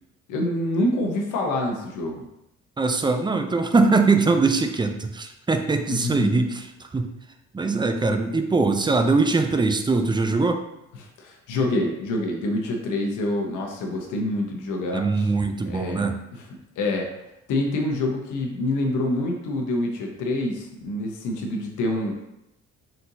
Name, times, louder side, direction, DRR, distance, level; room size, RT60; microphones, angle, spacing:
voice 1, 0.3-2.2 5.9-6.4 11.2-15.3 15.7-16.5 16.8-17.1 17.5-22.1, left 1 dB, 85° left, 1 dB, 0.9 m, -26 dB
voice 2, 2.8-6.6 6.9-7.1 7.5-10.6 14.9-16.2, right 3 dB, 15° right, 6 dB, 0.4 m, -22 dB
4.3 x 3.8 x 2.7 m, 0.87 s
cardioid pair, 90°, 30 cm